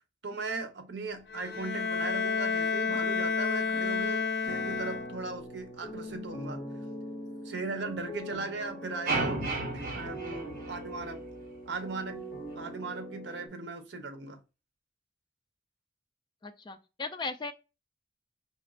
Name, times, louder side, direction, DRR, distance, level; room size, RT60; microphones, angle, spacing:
voice 1, 0.2-6.6 7.4-9.5 9.7-11.2 11.7-12.2 12.5-14.4, right 3 dB, 70° right, 0.8 m, -38 dB
Bowed string instrument, 1.3-5.4, left 5 dB, 80° left, 0.6 m, -30 dB
sound 1, 4.4-13.5, equal, 55° left, 0.9 m, -42 dB
sound 2, 9.1-11.3, right 2 dB, 45° right, 0.9 m, -33 dB
voice 2, 16.4-17.5, left 3 dB, 25° left, 0.3 m, -37 dB
4.3 x 3.0 x 2.4 m
head